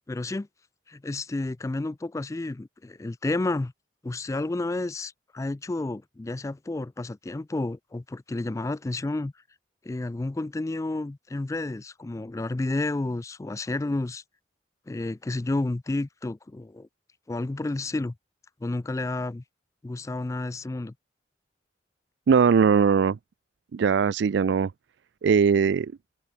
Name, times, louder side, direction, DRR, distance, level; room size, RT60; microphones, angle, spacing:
voice 1, 0.1-0.5 0.9-3.7 4.0-9.3 9.8-14.2 14.9-16.9 17.3-18.1 18.6-19.4 19.8-20.9, left 2 dB, 15° left, 0.3 m, -31 dB
voice 2, 22.3-23.2 23.7-24.7 25.2-25.9, right 6 dB, 75° right, 0.4 m, -20 dB
open air
head